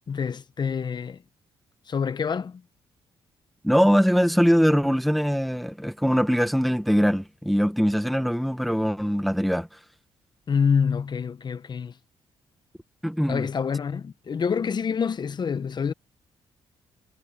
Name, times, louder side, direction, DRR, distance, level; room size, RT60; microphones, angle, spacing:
voice 1, 0.1-1.2 1.9-2.6 10.5-12.0 13.3-15.9, left 6 dB, 45° left, 1.1 m, -26 dB
voice 2, 3.6-9.7 13.0-13.5, equal, ahead, 1.5 m, -22 dB
cardioid pair, 75°, 10 cm